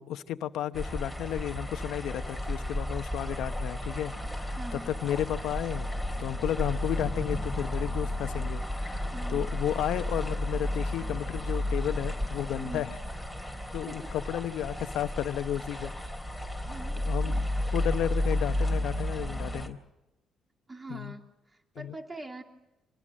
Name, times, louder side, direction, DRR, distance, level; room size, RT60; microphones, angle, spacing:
voice 1, 0.0-5.9 6.2-9.0 9.3-12.9 13.7-15.9 17.1-17.4 17.7-19.8 20.9-21.1 21.8-22.0, left 11 dB, 85° left, 11 dB, 0.9 m, -33 dB
sound 1, 0.7-19.7, left 1 dB, 5° right, 3.8 m, -32 dB
voice 2, 4.5-4.9 9.1-9.5 12.6-12.9 13.9-14.1 16.6-17.4 20.7-21.2 21.8-22.4, right 2 dB, 25° right, 3 dB, 2.8 m, -42 dB
27.0 x 20.0 x 7.6 m, 0.98 s
cardioid pair, 90°, 0 cm